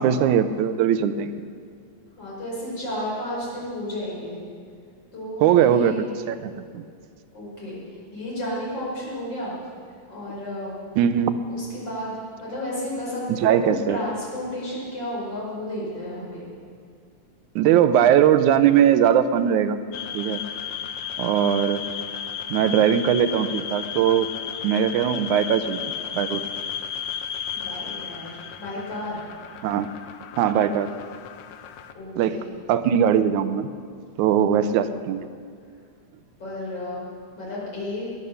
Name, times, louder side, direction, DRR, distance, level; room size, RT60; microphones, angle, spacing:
voice 1, 0.0-1.5 5.4-6.8 11.0-11.4 13.3-14.0 17.6-19.8 20.1-20.4 21.2-21.8 22.5-24.3 24.6-25.8 26.1-26.4 29.6-29.9 30.4-30.9 32.2-32.4 32.7-33.7 34.2-35.3, right 9 dB, 80° right, 10 dB, 2.1 m, -20 dB
voice 2, 2.2-4.4 5.1-6.0 7.3-7.8 8.1-9.5 10.1-10.7 11.5-16.5 27.5-29.2 31.9-32.5 34.4-34.8 36.4-37.0 37.4-38.1, left 1 dB, 35° left, -6 dB, 5.9 m, -32 dB
sound 1, 19.9-31.9, left 8 dB, 75° left, 1.5 m, -34 dB
19.0 x 11.0 x 6.8 m, 2.1 s
omnidirectional pair, 3.5 m